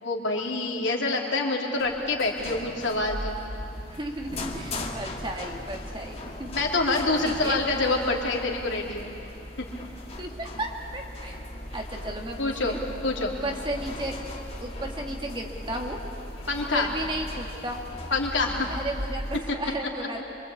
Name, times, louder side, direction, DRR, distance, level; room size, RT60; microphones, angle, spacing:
voice 1, 0.0-3.4 6.4-9.2 12.4-12.8 13.0-13.3 16.5-16.9 18.1-18.7, left 2 dB, 60° left, 0 dB, 3.1 m, -26 dB
sound 1, 1.8-19.4, left 1 dB, 30° left, 1.9 m, -38 dB
voice 2, 4.0-6.5 7.2-7.7 10.1-11.4 11.7-12.8 13.2-14.2 14.6-16.0 16.7-17.9 18.7-20.2, right 1 dB, 25° right, 1 dB, 2.0 m, -34 dB
26.0 x 24.5 x 8.6 m, 2.7 s
head